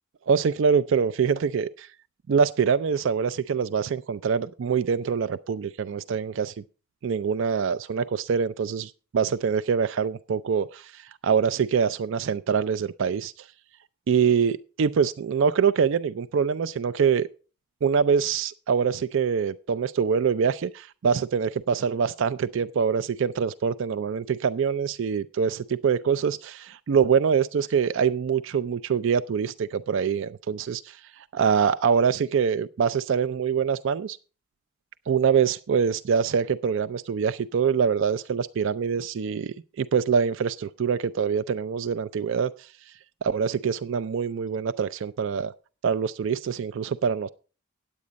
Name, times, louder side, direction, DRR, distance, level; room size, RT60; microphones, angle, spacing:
voice 1, 0.3-1.9 2.3-6.5 7.0-13.5 14.1-17.3 17.8-34.2 35.1-42.7 43.2-45.5 45.8-47.3, right 6 dB, 65° right, 0.4 m, -24 dB
9.7 x 8.4 x 5.1 m
head